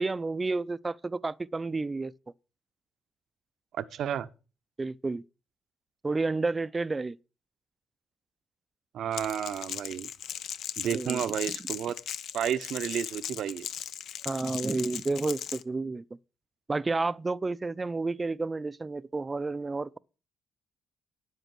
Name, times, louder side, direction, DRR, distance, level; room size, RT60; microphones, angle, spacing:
voice 1, 0.0-2.1 4.8-5.2 6.0-7.2 10.9-11.2 14.3-16.0 16.7-20.0, right 3 dB, 25° right, 0.5 m, -30 dB
voice 2, 3.7-4.3 8.9-10.1 10.8-11.9 12.3-13.7, right 9 dB, 70° right, 0.8 m, -31 dB
Crackle, 9.1-15.6, left 10 dB, 75° left, 0.7 m, -38 dB
9.8 x 8.1 x 6.1 m
cardioid pair, 90°, 0 cm